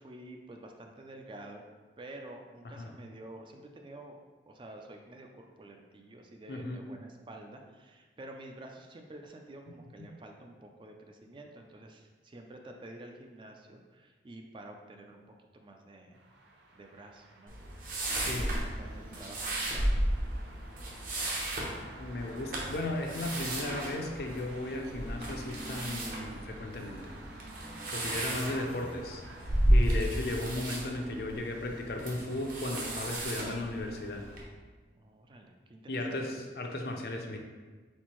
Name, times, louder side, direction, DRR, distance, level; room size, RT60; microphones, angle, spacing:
voice 1, 0.0-1.7 2.0-4.2 4.4-15.2 15.5-16.2 16.7-17.6 18.1-20.1 33.4-33.7 34.9-36.2, right 1 dB, 30° right, 3 dB, 0.3 m, -49 dB
voice 2, 6.5-6.8 18.1-18.6 22.0-27.1 27.9-34.2 35.9-37.4, left 2 dB, 60° left, 2 dB, 0.5 m, -36 dB
sound 1, 16.1-31.2, right 2 dB, 90° right, 0.6 m, -52 dB
sound 2, 17.5-34.4, right 1 dB, 50° right, 0.8 m, -33 dB
sound 3, 18.1-29.6, equal, 70° right, 1.1 m, -51 dB
4.3 x 4.0 x 3.0 m, 1.3 s
head